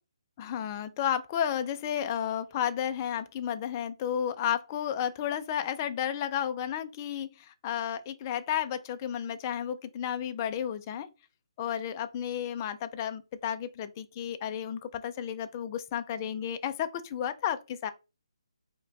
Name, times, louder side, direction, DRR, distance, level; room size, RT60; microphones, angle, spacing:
voice 1, 0.4-11.1 11.6-17.9, left 9 dB, 30° left, 0.4 m, -32 dB
4.9 x 2.2 x 2.6 m
figure-of-eight pair, 145°, 3 cm